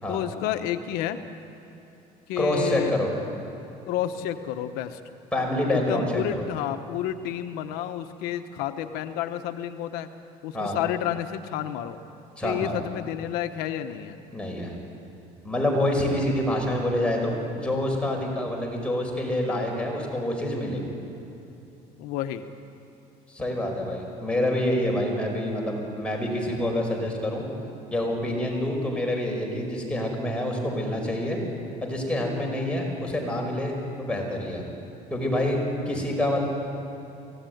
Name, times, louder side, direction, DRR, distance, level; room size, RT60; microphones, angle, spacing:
voice 1, 0.1-1.2 2.3-3.0 3.9-5.0 5.7-10.1 10.4-12.0 12.4-14.2 22.0-22.5, left 11 dB, 85° left, 9 dB, 1.1 m, -30 dB
voice 2, 2.4-3.1 5.3-6.5 10.5-10.8 12.4-12.7 14.3-14.8 15.4-20.8 23.3-27.4 27.9-31.4 31.8-34.6 35.1-35.6 35.9-36.5, left 1 dB, 5° left, 0 dB, 5.3 m, -27 dB
24.0 x 17.5 x 9.4 m, 2.9 s
cardioid pair, 125°, 15 cm